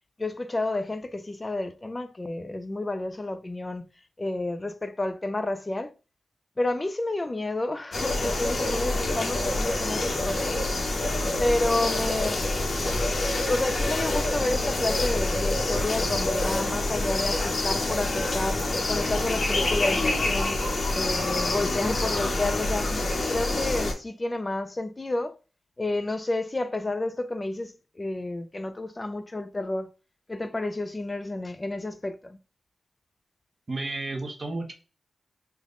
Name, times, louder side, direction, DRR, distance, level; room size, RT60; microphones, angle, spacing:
voice 1, 0.2-3.8 4.2-5.9 6.6-10.6 11.4-12.4 13.5-18.6 18.9-20.6 20.9-23.0 23.3-25.3 25.8-29.9 30.3-32.4, left 2 dB, 20° left, 0.3 m, -30 dB
sound 1, 7.9-23.9, left 2 dB, 50° left, 0.7 m, -27 dB
voice 2, 33.7-34.7, right 2 dB, 30° right, 0.6 m, -32 dB
3.4 x 2.1 x 3.6 m
wide cardioid pair, 160°, 0 cm